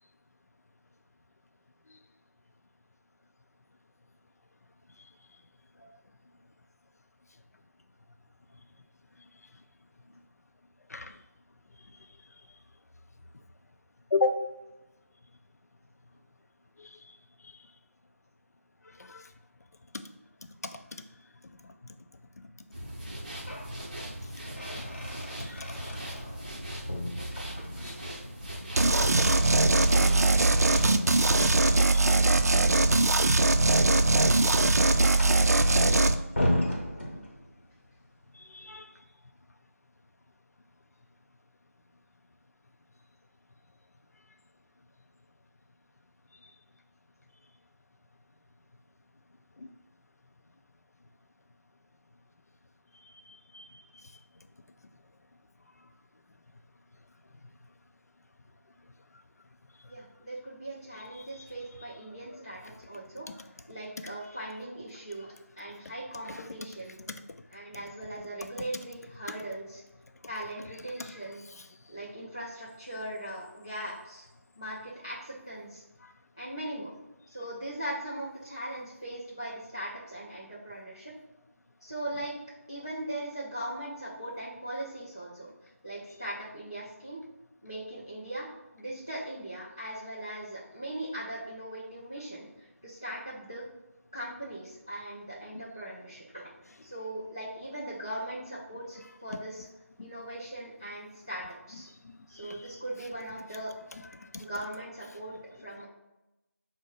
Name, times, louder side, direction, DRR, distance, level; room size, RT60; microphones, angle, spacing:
voice 1, 14.1-14.4 16.8-17.0 19.0-19.3 25.0-25.1 25.4-25.6 27.8-28.0 30.2-30.4 31.7-32.2 35.1-35.4 38.3-38.9 49.6-49.7 53.3-53.8 66.3-66.4 76.0-76.1 100.0-100.1 102.4-102.7 104.2-104.5, left 3 dB, 85° left, 8 dB, 0.4 m, -34 dB
sound 1, 22.7-31.6, equal, 35° right, 0.7 m, -39 dB
sound 2, 23.1-23.7 24.1-26.6 26.9-28.1 29.9-31.5 33.5-37.7, left 1 dB, 45° left, 1.0 m, -35 dB
sound 3, 28.8-36.1, right 2 dB, 90° right, 0.4 m, -21 dB
voice 2, 59.9-63.3 63.7-67.0 67.5-69.8 70.3-71.4 71.9-74.2 74.6-75.8 76.4-76.9 77.3-81.1 81.8-82.3 82.7-85.5 85.8-87.2 87.6-93.6 94.1-96.4 96.8-99.7 100.0-101.9 102.3-103.7 104.4-105.3 105.6-105.9, right 1 dB, 15° left, -8 dB, 0.4 m, -39 dB
4.8 x 2.0 x 3.8 m, 0.96 s
figure-of-eight pair, 175°, 8 cm